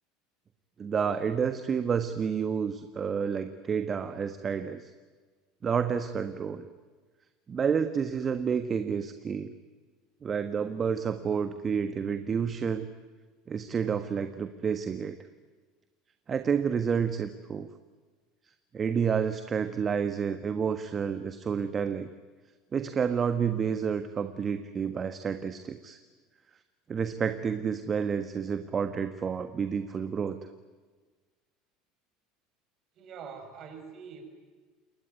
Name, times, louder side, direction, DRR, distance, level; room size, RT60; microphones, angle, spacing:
voice 1, 0.8-4.9 5.6-6.7 7.5-9.5 10.2-12.9 13.5-15.2 16.3-17.7 18.7-22.1 22.7-26.0 26.9-30.4, right 6 dB, 35° right, 9 dB, 1.5 m, -29 dB
voice 2, 32.9-34.2, right 6 dB, 50° right, 6 dB, 6.5 m, -44 dB
28.5 x 21.5 x 9.4 m, 1.4 s
hypercardioid pair, 75°, 0 cm